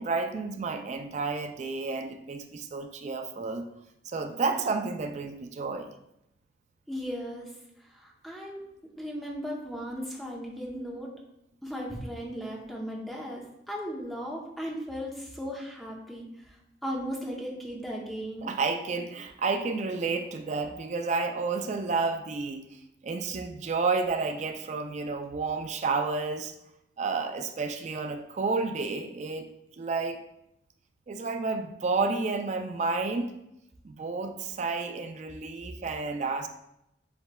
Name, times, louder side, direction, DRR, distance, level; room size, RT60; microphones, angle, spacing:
voice 1, 0.0-3.7 4.1-5.9 18.4-22.7 23.0-26.5 27.0-29.5 29.8-30.2 31.1-33.3 33.8-36.5, right 4 dB, 40° right, 7 dB, 0.3 m, -31 dB
voice 2, 6.9-7.5 7.8-11.1 11.6-16.6 16.8-18.5, equal, ahead, -2 dB, 0.7 m, -37 dB
7.8 x 3.1 x 2.2 m, 0.82 s
head